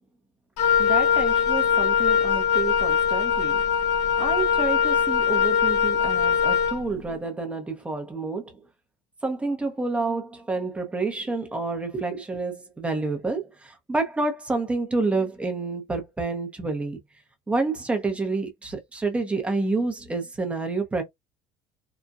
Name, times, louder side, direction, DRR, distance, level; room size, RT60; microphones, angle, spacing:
Wind instrument woodwind instrument, 0.6-6.8, left 7 dB, 60° left, 0.9 m, -22 dB
voice 1, 0.8-3.6 4.2-8.6 9.2-17.0 17.5-21.0, right 3 dB, 10° right, 0.8 m, -29 dB
4.0 x 2.2 x 2.4 m
cardioid pair, 145°, 13 cm